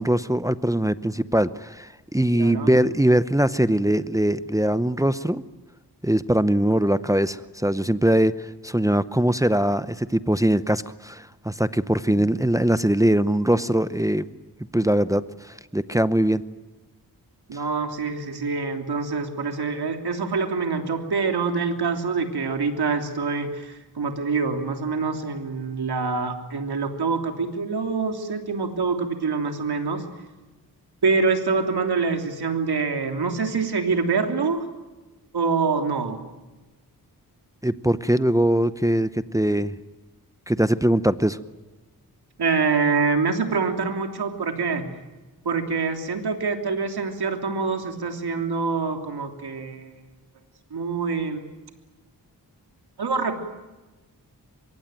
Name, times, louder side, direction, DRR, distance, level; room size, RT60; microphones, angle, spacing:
voice 1, 0.0-5.4 6.0-14.2 14.7-16.4 37.6-39.7 40.5-41.4, right 1 dB, 10° right, 13 dB, 0.8 m, -22 dB
voice 2, 2.3-2.7 12.1-12.2 17.5-30.0 31.0-34.7 35.3-36.2 42.4-44.9 45.4-49.9 50.7-51.4 53.0-53.4, right 4 dB, 75° right, 5 dB, 3.3 m, -25 dB
25.0 x 22.5 x 9.2 m, 1.2 s
wide cardioid pair, 85°, 39 cm